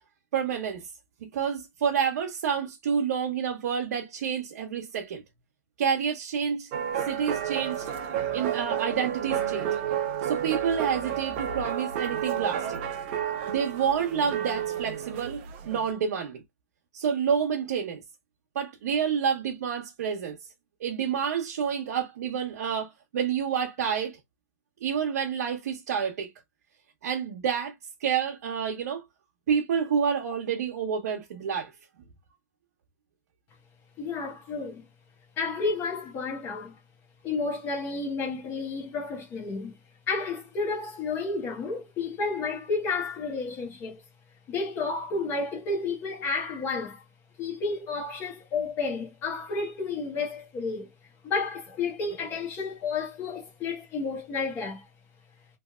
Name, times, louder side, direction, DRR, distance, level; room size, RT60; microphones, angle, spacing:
voice 1, 0.3-0.8 1.3-5.2 5.8-6.7 7.0-7.9 8.3-9.7 10.2-12.8 13.5-16.4 16.9-18.0 18.5-20.4 20.8-24.2 24.8-26.3 27.0-27.7 28.0-29.0 29.5-31.7, right 7 dB, 65° right, 1.0 m, -28 dB
sound 1, 6.7-15.9, right 9 dB, 40° right, 0.7 m, -31 dB
voice 2, 34.0-34.8 35.4-36.8 37.2-39.7 40.1-44.0 44.5-47.0 47.4-50.9 51.2-54.8, left 4 dB, 25° left, 1.3 m, -31 dB
3.3 x 3.2 x 2.3 m
hypercardioid pair, 160°, 9 cm